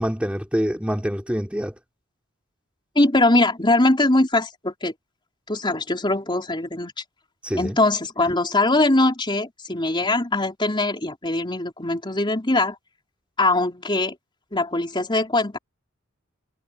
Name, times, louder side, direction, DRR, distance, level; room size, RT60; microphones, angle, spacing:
voice 1, 0.0-1.7 7.4-7.8, equal, 5° right, 3.6 m, -25 dB
voice 2, 3.0-4.9 5.5-6.9 7.5-12.8 13.4-14.1 14.5-15.6, left 2 dB, 25° left, 4.0 m, -21 dB
head